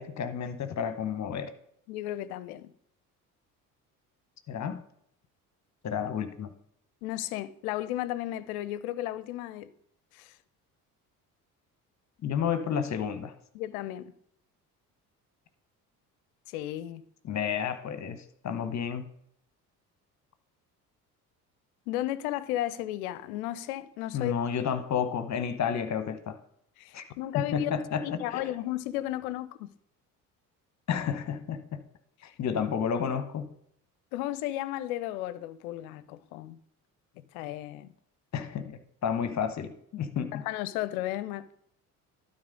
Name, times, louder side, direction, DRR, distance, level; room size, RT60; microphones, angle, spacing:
voice 1, 0.0-1.5 4.5-4.8 5.8-6.5 12.2-13.3 17.2-19.1 24.1-26.4 26.9-27.1 27.3-28.5 30.9-31.8 32.2-33.5 38.3-40.5, left 7 dB, 35° left, 1.0 m, -31 dB
voice 2, 1.9-2.7 7.0-9.7 10.1-10.3 13.5-14.1 16.5-17.0 21.9-24.3 26.8-27.7 28.0-29.7 34.1-36.6 37.3-37.9 40.3-41.5, left 14 dB, 65° left, 0.6 m, -34 dB
12.5 x 4.1 x 5.1 m
figure-of-eight pair, 55°, 46 cm